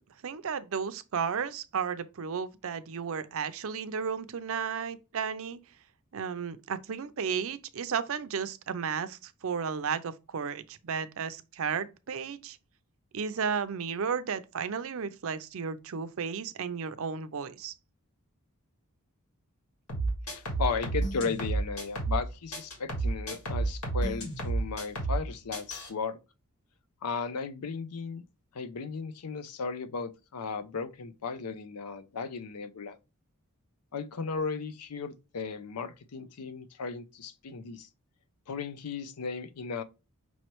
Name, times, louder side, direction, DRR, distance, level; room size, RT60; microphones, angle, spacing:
voice 1, 0.2-5.6 6.1-12.6 13.1-17.7, right 6 dB, 65° right, 0.5 m, -33 dB
sound 1, 19.9-22.2 22.5-25.2 25.5-25.9, right 3 dB, 75° left, 1.8 m, -31 dB
voice 2, 20.3-26.2 27.0-28.2 28.5-33.0 33.9-37.9 38.5-39.8, left 5 dB, 90° left, 0.6 m, -35 dB
5.5 x 3.1 x 3.0 m
head